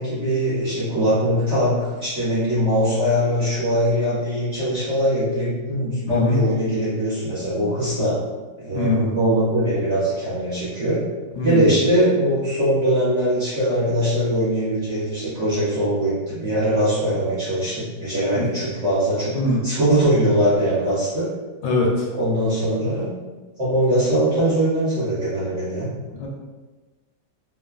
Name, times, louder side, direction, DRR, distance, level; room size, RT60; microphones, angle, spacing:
voice 1, 0.0-8.2 8.6-11.0 11.4-19.4 19.6-21.3 22.2-23.1 23.6-25.9, equal, 50° right, -11 dB, 0.9 m, -21 dB
voice 2, 6.1-6.4 8.7-9.1 11.4-11.7 18.3-18.5 19.4-19.6 21.6-22.1 26.1-26.3, left 2 dB, 75° left, -2 dB, 1.2 m, -22 dB
3.0 x 2.2 x 2.4 m, 1.2 s
omnidirectional pair, 2.1 m